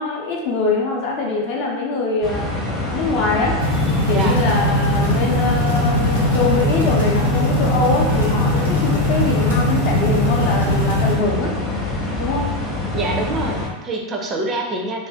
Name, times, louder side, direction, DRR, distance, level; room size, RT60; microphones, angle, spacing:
voice 1, 0.0-2.5 2.9-3.6 4.1-11.5 12.2-12.5, left 3 dB, 45° left, -1 dB, 0.6 m, -23 dB
sound 1, 2.2-13.7, left 2 dB, 10° left, 0.7 m, -25 dB
sound 2, 3.6-11.1, left 1 dB, 80° left, 1.0 m, -20 dB
voice 2, 4.1-4.4 12.9-15.1, right 2 dB, 25° right, 1 dB, 0.4 m, -25 dB
2.5 x 2.2 x 3.4 m, 1.1 s
figure-of-eight pair, 90°, 0 cm